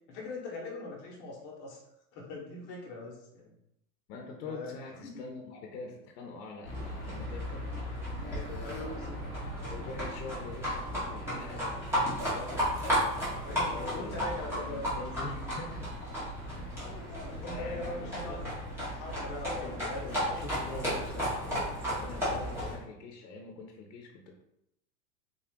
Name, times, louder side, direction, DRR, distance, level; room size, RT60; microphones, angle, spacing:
voice 1, 0.0-1.8 2.1-3.6 4.5-5.4 8.6-9.2 13.4-14.9 16.7-18.5 18.8-21.0, left 2 dB, 35° left, -2 dB, 1.0 m, -42 dB
voice 2, 4.1-7.7 8.2-9.3 9.7-15.9 16.5-16.7 17.4-18.5 19.6-24.3, left 3 dB, 70° left, 2 dB, 0.8 m, -44 dB
Livestock farm animals working animals, 6.6-22.8, equal, 5° right, 0.8 m, -34 dB
3.8 x 2.4 x 3.6 m, 0.83 s
supercardioid pair, 165°, 50 cm